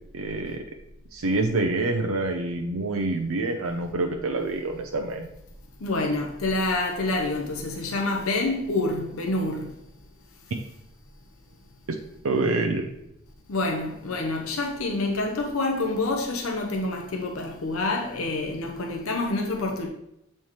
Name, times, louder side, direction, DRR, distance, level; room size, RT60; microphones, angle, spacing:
voice 1, 0.1-0.6 1.1-5.3 12.2-12.9, right 2 dB, 90° right, 0.6 m, -26 dB
voice 2, 5.8-9.7 13.5-19.9, left 2 dB, 85° left, 0.8 m, -27 dB
7.2 x 4.3 x 3.1 m
head